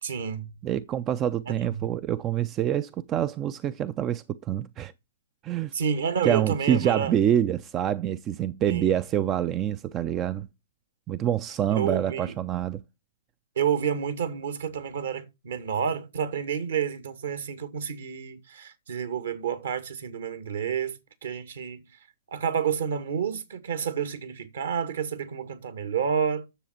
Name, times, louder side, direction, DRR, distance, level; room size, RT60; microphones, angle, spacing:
voice 1, 0.0-0.5 1.5-1.9 5.7-7.1 8.7-8.9 11.7-12.3 13.6-21.8 22.3-26.4, right 7 dB, 65° right, 2.2 m, -29 dB
voice 2, 0.6-4.9 5.4-5.7 6.2-10.5 11.1-12.8, right 10 dB, 25° right, 0.5 m, -26 dB
10.0 x 7.1 x 4.4 m
figure-of-eight pair, 120°, 0 cm